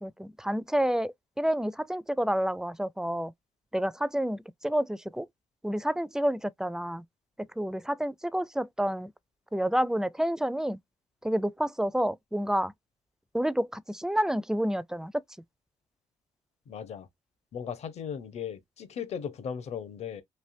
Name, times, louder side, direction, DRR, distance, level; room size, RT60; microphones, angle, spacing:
voice 1, 0.0-3.3 3.7-5.3 5.6-7.0 7.4-9.1 9.5-10.8 11.2-12.7 13.3-15.2, equal, 5° right, 0.4 m, -29 dB
voice 2, 16.7-17.1 17.5-20.2, left 7 dB, 60° left, 0.9 m, -37 dB
3.4 x 2.6 x 2.5 m
supercardioid pair, 65°, 12 cm